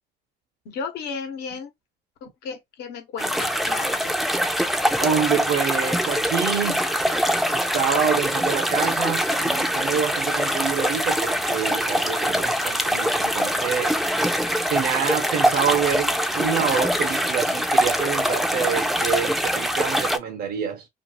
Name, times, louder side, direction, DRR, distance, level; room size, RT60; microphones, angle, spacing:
voice 1, 0.6-1.7 2.2-4.2, left 5 dB, 80° left, 1.0 m, -34 dB
sound 1, 3.2-20.2, equal, ahead, 0.4 m, -23 dB
voice 2, 5.0-6.9 7.5-13.9 14.7-20.9, right 7 dB, 60° right, 0.6 m, -27 dB
2.5 x 2.3 x 3.0 m
cardioid pair, 110°, 17 cm